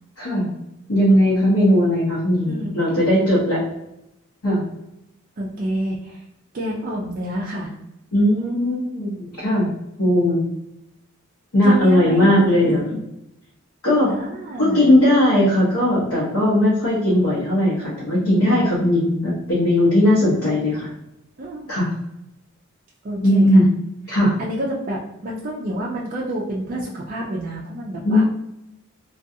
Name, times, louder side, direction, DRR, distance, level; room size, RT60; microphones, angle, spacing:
voice 1, 0.2-0.5 0.9-3.6 4.4-4.6 8.1-9.7 10.0-10.4 11.5-12.8 13.8-14.1 14.6-20.9 21.7-21.9 23.2-23.8 24.1-24.3 28.0-28.2, left 1 dB, 80° left, -8 dB, 0.8 m, -18 dB
voice 2, 5.4-6.2 6.5-7.7 11.6-12.3 12.6-12.8 14.1-15.0 21.4-21.7 23.0-23.6 24.4-28.2, right 1 dB, 40° right, -4 dB, 0.3 m, -28 dB
2.4 x 2.3 x 2.7 m, 0.87 s
head